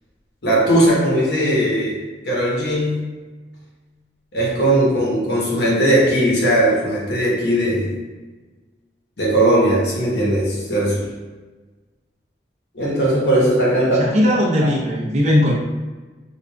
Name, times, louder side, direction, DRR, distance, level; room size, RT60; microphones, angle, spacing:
voice 1, 0.4-3.1 4.3-8.0 9.2-11.1 12.7-14.0, right 1 dB, 75° left, -4 dB, 1.1 m, -18 dB
voice 2, 13.8-15.5, left 1 dB, 40° right, -3 dB, 0.6 m, -18 dB
4.8 x 2.5 x 2.3 m, 1.3 s
head